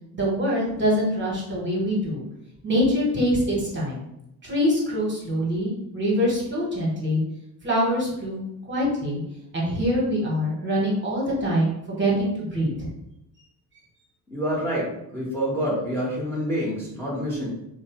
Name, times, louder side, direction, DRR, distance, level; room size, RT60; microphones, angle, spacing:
voice 1, 0.1-2.2 2.6-4.0 4.4-7.2 7.6-9.2 9.5-12.9, equal, 25° right, -4 dB, 1.0 m, -24 dB
voice 2, 14.3-17.5, equal, 5° left, -5 dB, 0.9 m, -27 dB
2.5 x 2.1 x 2.9 m, 0.85 s
supercardioid pair, 75°, 43 cm